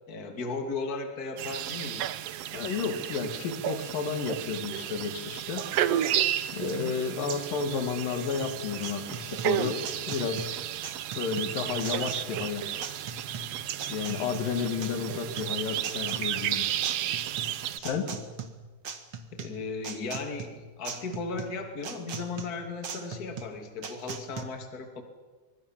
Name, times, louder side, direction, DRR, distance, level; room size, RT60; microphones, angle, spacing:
voice 1, 0.1-2.1 6.5-6.9 18.0-18.2 19.3-25.0, left 4 dB, 30° left, 5 dB, 2.8 m, -36 dB
sound 1, 1.4-17.8, right 11 dB, 80° right, 1.4 m, -32 dB
voice 2, 2.5-5.6 6.5-9.8 10.1-10.5 11.2-12.9 13.9-16.6 17.8-18.1, left 5 dB, 75° left, 7 dB, 3.8 m, -32 dB
sound 2, 8.8-24.4, right 5 dB, 45° right, 2.2 m, -40 dB
25.0 x 22.5 x 7.4 m, 1.3 s
omnidirectional pair, 4.0 m